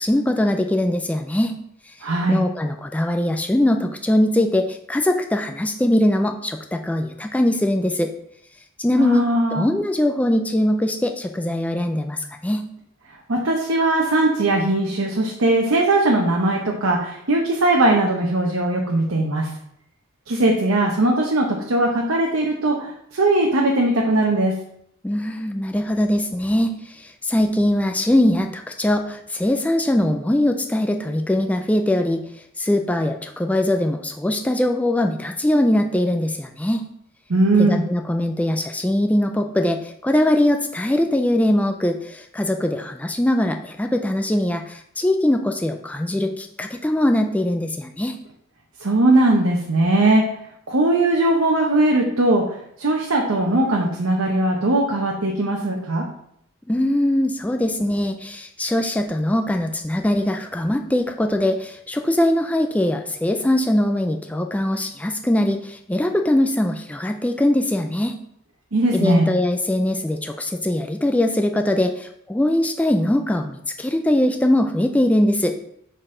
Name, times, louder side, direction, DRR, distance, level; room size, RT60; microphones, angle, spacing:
voice 1, 0.0-1.5 1.9-2.0 2.3-8.1 8.8-9.2 9.5-12.7 25.0-32.2 32.6-36.8 37.6-48.2 56.7-68.2 68.9-75.6, left 1 dB, 5° left, 5 dB, 0.3 m, -21 dB
voice 2, 2.0-2.4 8.9-9.7 13.3-19.5 20.3-24.5 37.3-37.8 48.8-50.2 50.7-56.0 68.7-69.3, right 2 dB, 65° right, -1 dB, 0.8 m, -19 dB
6.3 x 4.0 x 3.7 m, 0.72 s
head